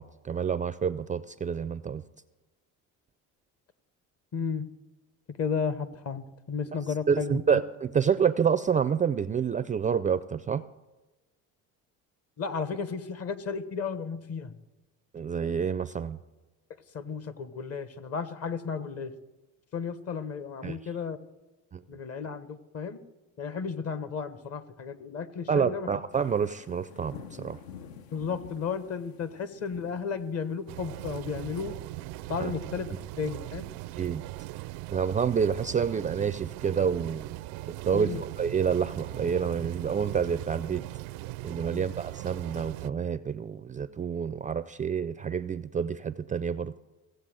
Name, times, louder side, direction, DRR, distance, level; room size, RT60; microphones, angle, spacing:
voice 1, 0.0-2.0 7.1-10.6 15.1-16.2 20.6-20.8 21.7-21.8 25.5-27.6 32.4-32.5 34.0-34.2 34.9-37.3 37.8-40.8 41.4-46.7, right 7 dB, 25° right, 13 dB, 0.4 m, -28 dB
voice 2, 4.3-4.7 5.3-7.6 12.4-14.5 16.9-19.1 19.7-21.2 21.9-23.0 23.4-25.9 28.1-31.7 32.3-32.9 33.2-33.7 37.9-38.2 41.7-41.9, left 5 dB, 45° left, 13 dB, 1.2 m, -33 dB
sound 1, 26.1-31.1, left 7 dB, 80° left, 1.0 m, -49 dB
sound 2, 30.7-42.9, right 18 dB, 90° right, 0.5 m, -39 dB
16.0 x 8.0 x 7.6 m, 1.1 s
cardioid pair, 110°, 34 cm